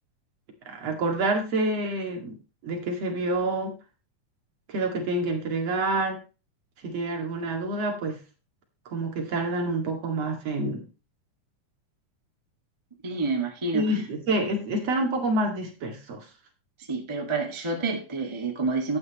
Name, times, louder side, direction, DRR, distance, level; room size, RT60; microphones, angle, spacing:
voice 1, 0.7-2.4 2.6-3.8 4.7-6.2 6.8-8.2 8.9-10.9 13.7-16.3, right 2 dB, 55° right, 3 dB, 3.1 m, -27 dB
voice 2, 13.0-13.9 16.9-19.0, right 3 dB, 15° right, 2 dB, 1.3 m, -28 dB
12.0 x 9.0 x 3.0 m, 0.32 s
omnidirectional pair, 3.6 m